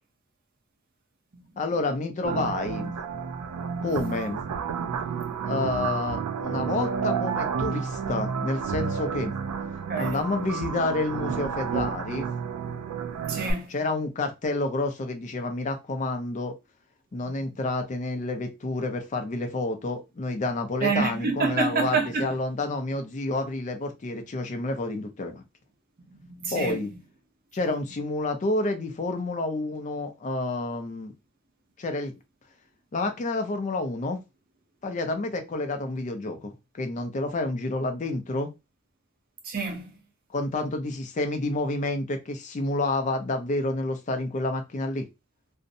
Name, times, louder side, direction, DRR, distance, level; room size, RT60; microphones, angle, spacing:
voice 1, 1.6-2.9 3.8-4.4 5.4-9.3 10.0-12.3 13.7-16.5 17.1-25.4 26.5-26.9 27.5-31.1 31.8-32.1 32.9-34.2 34.8-38.5 40.3-45.1, left 2 dB, 35° left, 0.4 m, -29 dB
sound 1, 2.2-13.5, right 6 dB, 85° right, 0.3 m, -30 dB
voice 2, 9.9-10.2 13.1-13.7 20.8-22.3 26.1-26.8 39.4-39.9, right 4 dB, 40° right, 0.6 m, -28 dB
2.6 x 2.0 x 2.6 m
head